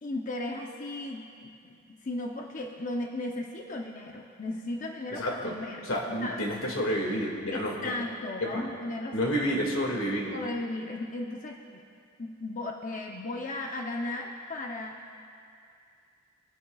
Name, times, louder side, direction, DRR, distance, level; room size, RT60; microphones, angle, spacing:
voice 1, 0.0-5.9 6.2-6.5 7.5-9.5 10.3-11.8 12.2-15.0, left 2 dB, 40° left, 1 dB, 0.7 m, -36 dB
voice 2, 5.1-5.5 5.9-7.7 8.4-8.6 9.1-10.4, equal, 85° left, -1 dB, 2.1 m, -29 dB
23.5 x 10.5 x 2.3 m, 2.5 s
head